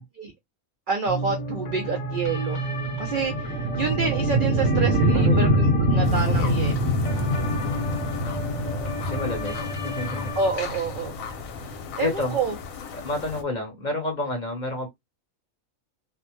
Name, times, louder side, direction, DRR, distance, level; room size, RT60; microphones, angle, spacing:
voice 1, 0.9-2.6 3.0-6.7 10.3-11.1 12.0-12.5, right 4 dB, 65° right, 0.5 m, -28 dB
sound 1, 1.1-10.5, right 1 dB, 60° left, 0.3 m, -33 dB
sound 2, 1.5-12.2, right 1 dB, 80° right, 1.0 m, -25 dB
sound 3, 6.0-13.4, left 4 dB, 80° left, 1.0 m, -36 dB
voice 2, 9.0-10.3 12.0-12.4 13.0-14.9, left 2 dB, 40° left, 0.7 m, -30 dB
2.5 x 2.1 x 2.9 m
omnidirectional pair, 1.4 m